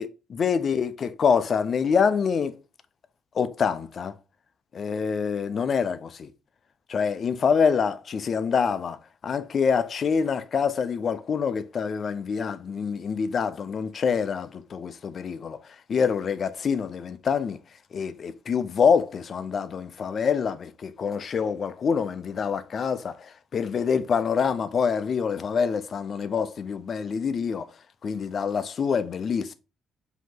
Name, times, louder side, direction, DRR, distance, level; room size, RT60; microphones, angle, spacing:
voice 1, 0.4-2.6 3.4-4.1 4.7-6.3 6.9-9.0 9.2-15.6 15.9-17.6 17.9-27.7 28.0-29.5, left 6 dB, 35° left, 0.4 m, -26 dB
5.1 x 2.8 x 3.7 m
cardioid pair, 170°, 0 cm